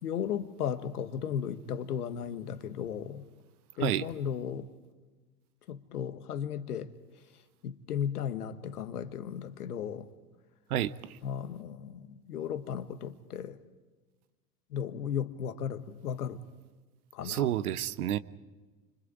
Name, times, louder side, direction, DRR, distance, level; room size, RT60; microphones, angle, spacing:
voice 1, 0.0-3.3 3.8-4.7 5.7-6.9 7.6-10.1 11.2-13.6 14.7-16.4 17.1-17.5, left 8 dB, 70° left, 1.6 m, -35 dB
voice 2, 10.7-11.2 17.2-18.2, right 12 dB, 65° right, 1.1 m, -30 dB
29.5 x 25.0 x 5.0 m
figure-of-eight pair, 80°, 47 cm